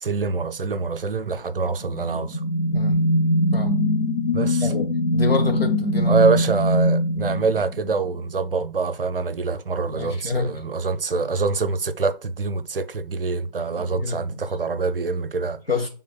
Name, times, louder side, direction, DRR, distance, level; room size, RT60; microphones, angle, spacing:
voice 1, 0.0-2.4 4.3-4.7 6.1-15.6, right 4 dB, 65° right, 0.6 m, -25 dB
sound 1, 1.7-8.2, left 1 dB, 60° left, 0.7 m, -22 dB
voice 2, 5.1-6.2 9.9-10.5 13.8-14.2 15.7-15.9, left 3 dB, 75° left, 1.6 m, -27 dB
6.2 x 3.5 x 2.3 m
figure-of-eight pair, 165°, 30 cm